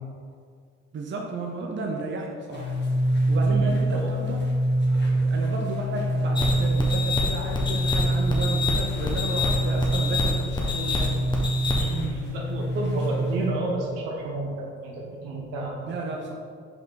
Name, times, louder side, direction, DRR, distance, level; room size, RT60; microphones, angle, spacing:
voice 1, 0.9-2.7 3.3-4.4 4.9-11.2 15.9-16.3, right 3 dB, 30° right, 0 dB, 0.9 m, -33 dB
sound 1, 2.5-13.5, right 1 dB, 30° left, 1.5 m, -25 dB
voice 2, 3.5-4.1 11.8-16.1, right 2 dB, 70° right, -2 dB, 1.4 m, -31 dB
sound 2, 6.3-12.1, left 3 dB, 15° left, 1.3 m, -27 dB
5.5 x 4.8 x 4.0 m, 2.1 s
hypercardioid pair, 60°, 35 cm